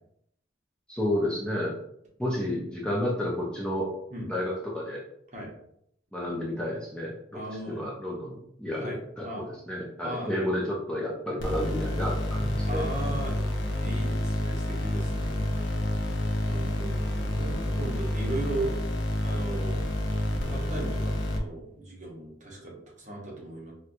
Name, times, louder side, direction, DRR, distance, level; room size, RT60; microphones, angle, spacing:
voice 1, 0.9-1.8 2.2-3.9 4.3-5.0 6.1-7.1 7.7-12.8, left 1 dB, 5° left, -4 dB, 0.5 m, -31 dB
voice 2, 7.3-7.9 8.7-9.4 10.0-10.3 12.6-13.5 13.8-15.5 15.9-18.8 19.2-19.9 20.5-23.7, right 1 dB, 40° right, -2 dB, 0.9 m, -37 dB
sound 1, 11.4-21.4, left 1 dB, 80° left, 0.6 m, -29 dB
4.3 x 2.2 x 2.5 m, 0.73 s
head